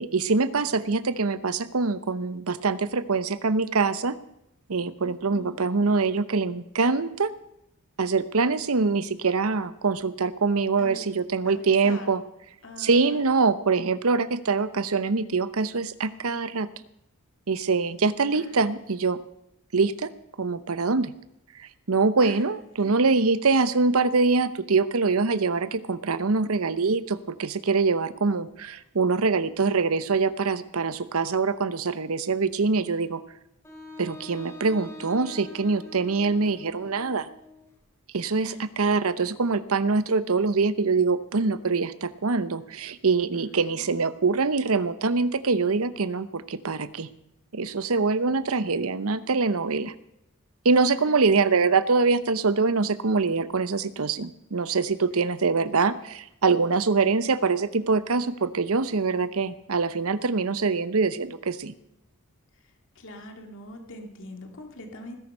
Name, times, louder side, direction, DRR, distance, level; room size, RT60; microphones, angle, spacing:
voice 1, 0.0-4.1 4.7-7.3 8.0-12.2 12.8-16.7 17.5-19.2 19.7-20.1 20.4-21.1 21.6-33.2 34.0-37.3 38.1-47.1 47.5-49.9 50.6-61.7, right 4 dB, 70° right, 14 dB, 0.8 m, -24 dB
voice 2, 5.0-5.7 10.8-11.0 11.5-12.1 12.6-13.2 18.3-18.6 22.2-22.4 22.8-22.9 38.3-38.7 43.4-43.8 50.8-51.1 63.0-65.2, left 1 dB, 60° left, 3 dB, 2.3 m, -43 dB
Wind instrument woodwind instrument, 33.6-37.7, left 1 dB, 10° left, 3.6 m, -44 dB
19.5 x 10.5 x 5.5 m, 0.82 s
head